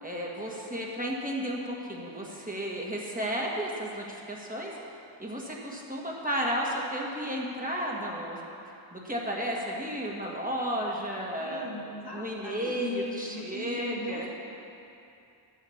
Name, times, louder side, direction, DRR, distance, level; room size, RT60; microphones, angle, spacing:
voice 1, 0.0-4.7 5.2-8.4 8.9-11.7 12.1-14.3, equal, 15° right, -3 dB, 1.8 m, -33 dB
voice 2, 11.4-14.4, left 2 dB, 55° left, -3 dB, 1.8 m, -39 dB
10.5 x 7.5 x 7.3 m, 2.7 s
wide cardioid pair, 65°, 47 cm